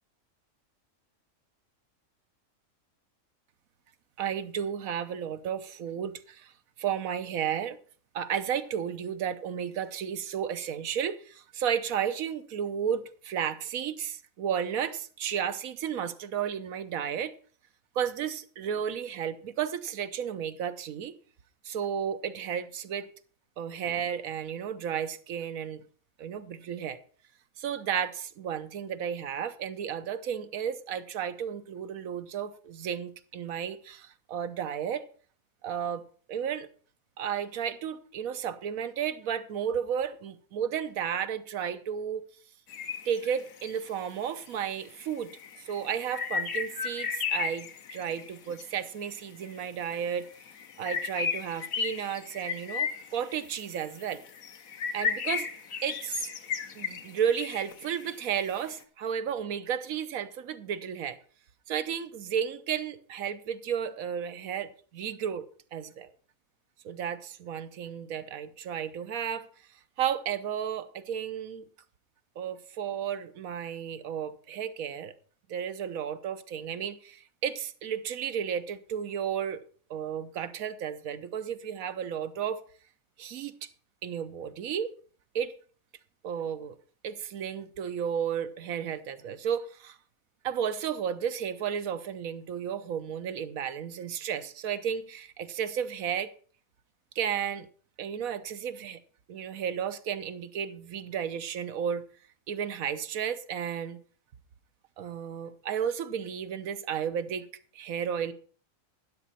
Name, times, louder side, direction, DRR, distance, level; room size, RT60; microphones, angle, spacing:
voice 1, 4.2-6.5 6.8-7.8 8.1-17.3 17.9-21.1 21.6-23.1 23.6-25.8 26.2-27.0 27.6-35.1 35.6-36.0 36.3-36.7 37.2-42.2 43.0-45.3 45.6-50.3 50.8-54.2 54.9-55.5 55.8-56.3 56.7-61.2 61.7-66.1 66.8-69.5 70.0-71.6 72.4-75.1 75.5-79.6 79.9-82.6 83.2-83.7 84.0-84.9 85.3-85.5 86.2-86.7 87.0-90.0 90.4-96.3 97.1-97.7 98.0-99.0 99.3-102.1 102.5-104.0 105.0-107.5 107.7-108.3, right 8 dB, 80° right, 1.3 m, -33 dB
sound 1, 42.7-43.7 44.6-44.7 45.0-48.6 49.4-49.7 49.9-58.6, left 6 dB, 85° left, 1.4 m, -35 dB
12.5 x 10.0 x 4.2 m
omnidirectional pair, 1.4 m